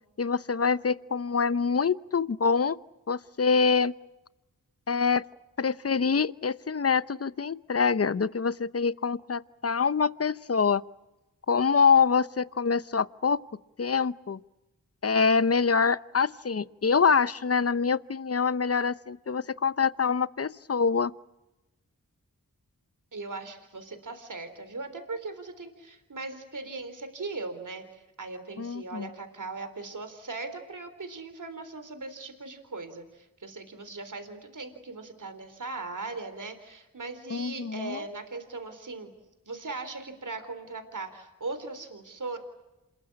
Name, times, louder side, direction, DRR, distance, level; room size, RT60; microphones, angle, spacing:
voice 1, 0.2-2.8 3.1-3.9 4.9-5.2 5.6-10.8 11.5-13.4 13.8-14.4 15.0-21.1 28.6-29.1 37.3-38.0, left 5 dB, 45° left, 17 dB, 0.8 m, -25 dB
voice 2, 23.1-39.1 39.5-42.4, right 3 dB, 65° right, 8 dB, 3.9 m, -39 dB
28.0 x 21.5 x 8.8 m, 0.99 s
cardioid pair, 50°, 34 cm